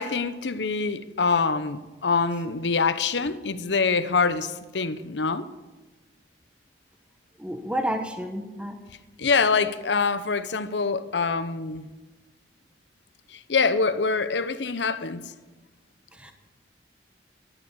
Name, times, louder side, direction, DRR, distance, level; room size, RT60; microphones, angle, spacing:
voice 1, 0.0-5.5 9.2-11.9 13.3-15.3, left 4 dB, 80° left, 0.8 m, -25 dB
voice 2, 7.4-8.8 16.2-16.3, equal, 5° right, 1.1 m, -30 dB
13.0 x 9.9 x 8.3 m
head